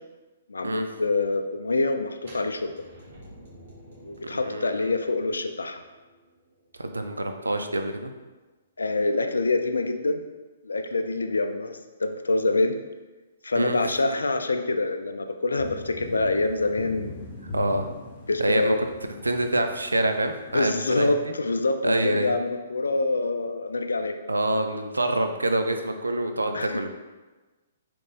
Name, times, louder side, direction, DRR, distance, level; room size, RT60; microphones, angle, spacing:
voice 1, 0.5-2.7 4.0-5.8 8.8-10.2 10.6-12.8 13.4-17.2 18.3-18.8 20.5-24.1 26.5-26.9, left 2 dB, 75° left, 7 dB, 0.4 m, -26 dB
sound 1, 2.2-8.0, right 1 dB, 55° right, 1.5 m, -51 dB
voice 2, 4.3-4.8 6.8-8.1 13.5-13.9 17.5-17.8 18.4-18.8 19.2-21.2 21.8-22.3 24.3-26.9, right 1 dB, 85° right, 6 dB, 0.4 m, -26 dB
sound 2, 15.6-20.6, left 3 dB, 40° left, 0.8 m, -40 dB
3.8 x 3.0 x 3.7 m, 1.2 s
figure-of-eight pair, 125°, 0 cm